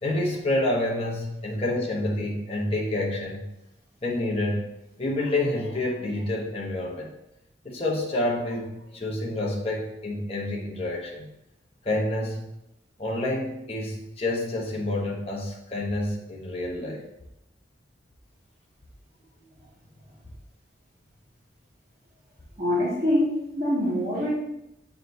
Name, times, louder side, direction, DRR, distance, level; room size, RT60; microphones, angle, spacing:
voice 1, 0.0-3.5 4.0-4.7 5.0-7.1 7.6-11.3 11.8-12.5 13.0-17.0, left 1 dB, 30° left, -2 dB, 0.9 m, -28 dB
voice 2, 22.6-24.3, left 1 dB, 35° right, -12 dB, 1.8 m, -24 dB
7.6 x 4.9 x 2.7 m, 0.84 s
head